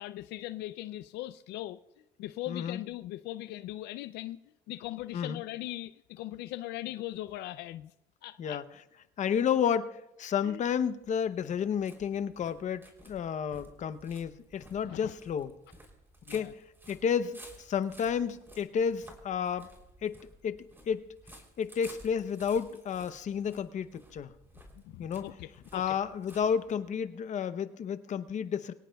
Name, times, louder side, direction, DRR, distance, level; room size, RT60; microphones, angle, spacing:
voice 1, 0.0-1.8 2.2-4.4 4.7-7.9 8.2-8.6 10.4-10.6 14.8-15.1 16.3-16.5 24.8-26.0, left 15 dB, 80° left, 13 dB, 0.4 m, -40 dB
voice 2, 2.5-2.8 5.1-5.4 8.4-8.6 9.2-15.5 16.3-16.5 16.9-19.7 20.0-20.2 20.4-20.6 20.9-21.0 21.6-24.3 25.0-25.2 25.7-28.7, left 7 dB, 45° left, 12 dB, 0.7 m, -31 dB
sound 1, 10.5-27.0, right 1 dB, 15° right, 3.2 m, -55 dB
24.5 x 17.5 x 2.3 m, 0.93 s
cardioid pair, 110°, 17 cm